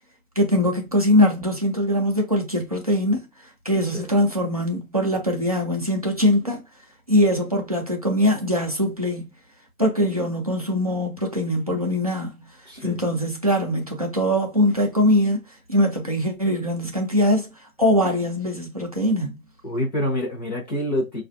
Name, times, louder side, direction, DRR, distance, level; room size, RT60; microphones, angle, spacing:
voice 1, 0.4-3.3 3.7-6.6 7.1-9.2 9.8-12.4 12.8-15.4 15.7-17.5 17.8-19.4, left 1 dB, 30° right, 0.4 m, -22 dB
voice 2, 12.6-13.0 19.6-21.2, left 1 dB, 30° left, 0.8 m, -26 dB
4.8 x 2.4 x 2.5 m
hypercardioid pair, 170°, 43 cm